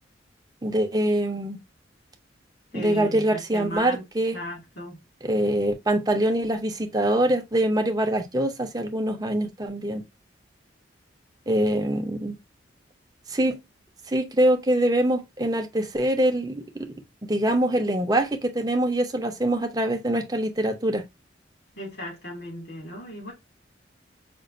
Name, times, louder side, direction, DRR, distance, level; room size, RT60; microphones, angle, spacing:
voice 1, 0.6-1.6 2.7-4.4 5.2-10.0 11.5-12.4 13.3-13.6 14.1-16.9 17.3-21.0, right 1 dB, 20° right, 0.6 m, -24 dB
voice 2, 2.7-4.0 4.3-5.0 21.7-23.3, left 1 dB, 65° left, 2.2 m, -36 dB
5.2 x 2.4 x 2.5 m
head